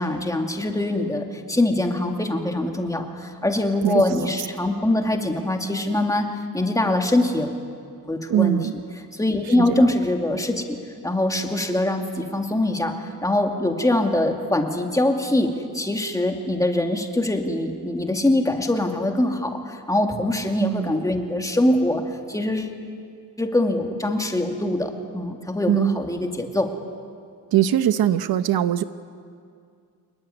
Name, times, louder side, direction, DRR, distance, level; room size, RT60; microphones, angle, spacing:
voice 1, 0.0-7.5 8.1-8.6 9.1-10.6 11.0-22.8 23.4-26.7, left 1 dB, 10° left, 3 dB, 2.3 m, -23 dB
voice 2, 8.3-8.7 9.7-9.9 20.6-20.9 25.7-26.0 27.5-28.8, right 11 dB, 70° right, 11 dB, 1.0 m, -21 dB
26.5 x 22.0 x 9.9 m, 2.3 s
cardioid pair, 145°, 38 cm